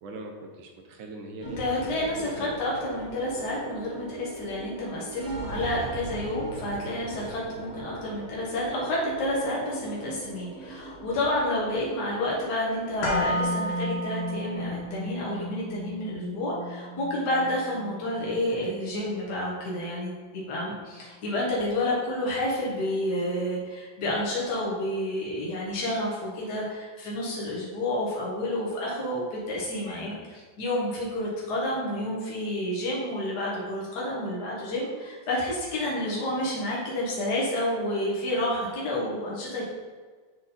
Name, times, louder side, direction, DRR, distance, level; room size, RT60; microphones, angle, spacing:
voice 1, 0.0-2.6 12.0-12.2, right 2 dB, 85° right, 3 dB, 1.7 m, -41 dB
sound 1, 1.4-19.8, right 3 dB, 45° right, 1.1 m, -41 dB
voice 2, 1.6-39.6, left 1 dB, 60° left, -5 dB, 1.9 m, -30 dB
sound 2, 13.0-21.1 21.4-21.5, left 1 dB, 80° left, 2.1 m, -34 dB
7.2 x 3.8 x 4.1 m, 1.5 s
omnidirectional pair, 2.1 m